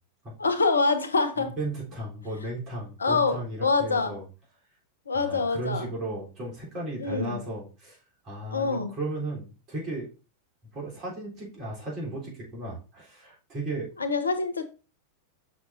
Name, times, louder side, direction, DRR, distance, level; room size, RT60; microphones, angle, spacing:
voice 1, 0.4-1.5 3.0-4.2 5.1-5.9 7.0-7.4 8.5-8.9 14.0-14.6, left 4 dB, 75° left, 0.7 m, -25 dB
voice 2, 1.4-4.2 5.1-8.0 8.2-10.1 10.7-13.9, right 2 dB, 35° right, 3.5 m, -35 dB
6.3 x 5.9 x 2.6 m
figure-of-eight pair, 90°, 0 cm